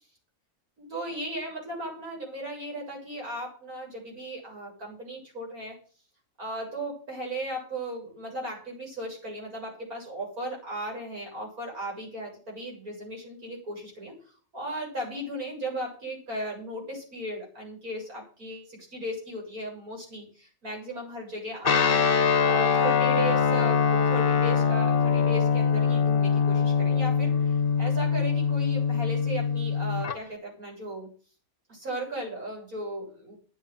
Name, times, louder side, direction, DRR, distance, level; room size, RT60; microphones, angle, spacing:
voice 1, 0.8-5.8 6.4-14.1 14.5-22.0 22.4-31.1 31.7-33.4, right 1 dB, 70° right, -2 dB, 7.9 m, -36 dB
Guitar, 21.6-30.2, left 6 dB, 40° left, 1.0 m, -23 dB
10.0 x 7.9 x 9.3 m, 0.39 s
omnidirectional pair, 1.6 m